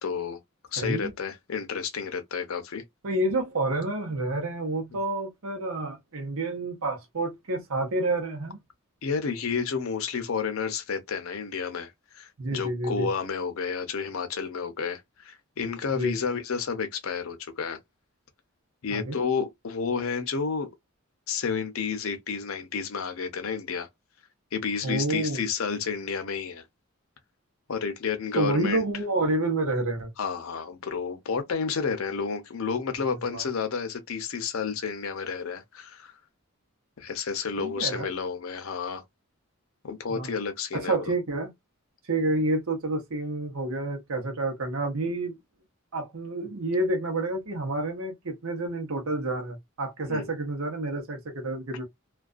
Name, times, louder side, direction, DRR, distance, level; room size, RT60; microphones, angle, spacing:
voice 1, 0.0-0.4 0.7-2.8 9.0-17.8 18.8-20.7 21.3-23.9 24.5-26.7 27.7-28.8 30.2-36.1 37.0-39.0 39.8-41.0 50.1-50.3, left 5 dB, 70° left, 0.6 m, -31 dB
voice 2, 0.8-1.1 3.0-8.6 12.4-13.1 15.9-16.2 18.9-19.2 24.8-25.4 28.3-30.1 33.3-33.4 37.6-38.1 40.1-40.3 40.7-41.5 42.1-45.4 45.9-51.8, right 2 dB, 75° right, 0.8 m, -29 dB
2.4 x 2.2 x 2.4 m
head